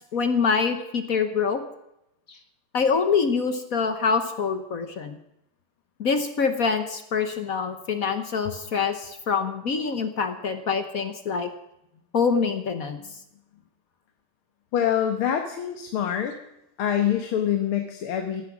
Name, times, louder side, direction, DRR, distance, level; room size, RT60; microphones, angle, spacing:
voice 1, 0.1-1.6 2.3-2.4 2.7-5.2 6.0-11.5 12.1-13.0, left 5 dB, 50° left, 9 dB, 1.2 m, -25 dB
voice 2, 14.7-16.4 16.8-18.4, left 9 dB, 75° left, 5 dB, 2.1 m, -25 dB
17.0 x 12.0 x 6.1 m, 0.83 s
omnidirectional pair, 2.4 m